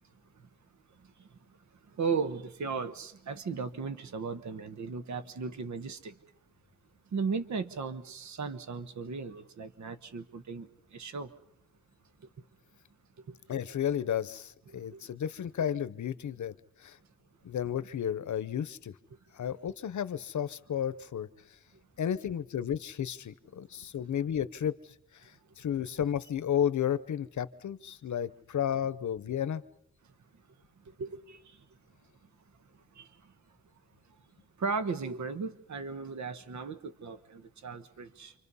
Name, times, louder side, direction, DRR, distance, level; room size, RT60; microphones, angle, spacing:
voice 1, 2.0-6.1 7.1-11.3 13.3-13.4 14.7-15.0 31.0-31.6 32.9-33.1 34.6-38.3, right 5 dB, 65° right, 1.2 m, -36 dB
voice 2, 13.5-16.5 16.8-17.0 17.4-18.9 19.3-21.3 22.0-24.8 25.6-29.6, left 9 dB, 65° left, 0.9 m, -32 dB
28.5 x 25.5 x 5.5 m
wide cardioid pair, 140°, 32 cm